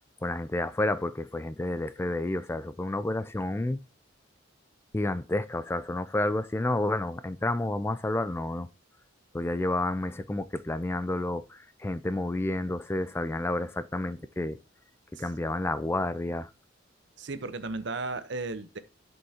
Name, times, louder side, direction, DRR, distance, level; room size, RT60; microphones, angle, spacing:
voice 1, 0.2-3.8 4.9-8.7 9.3-14.6 15.2-16.5, left 2 dB, 15° left, 0.3 m, -30 dB
voice 2, 17.2-18.8, right 3 dB, 70° right, 0.9 m, -35 dB
11.5 x 5.3 x 2.8 m
head